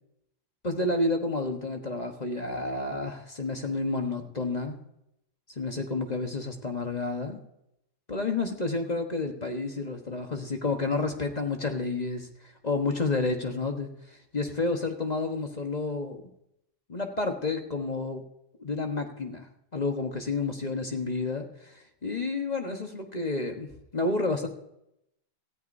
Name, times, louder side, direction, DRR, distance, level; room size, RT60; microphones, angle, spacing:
voice 1, 0.6-4.8 5.6-7.4 8.1-16.2 16.9-18.2 18.6-19.5 19.7-24.5, left 3 dB, 30° left, 3 dB, 0.8 m, -30 dB
18.0 x 14.0 x 2.7 m, 0.80 s
omnidirectional pair, 2.4 m